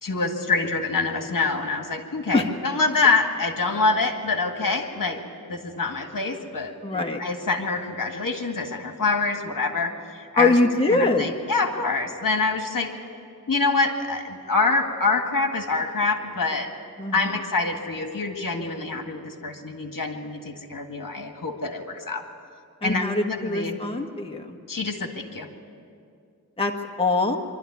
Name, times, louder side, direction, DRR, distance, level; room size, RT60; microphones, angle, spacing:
voice 1, 0.0-5.2 5.5-10.5 10.9-12.9 13.5-16.7 17.1-22.2 22.8-23.8 24.7-25.5, left 3 dB, 60° left, 4 dB, 2.0 m, -26 dB
voice 2, 6.8-7.2 10.3-11.3 17.0-17.5 22.8-24.6 26.6-26.7 27.0-27.4, left 2 dB, 15° left, 2 dB, 1.5 m, -23 dB
24.5 x 12.5 x 9.6 m, 2.4 s
wide cardioid pair, 75°, 37 cm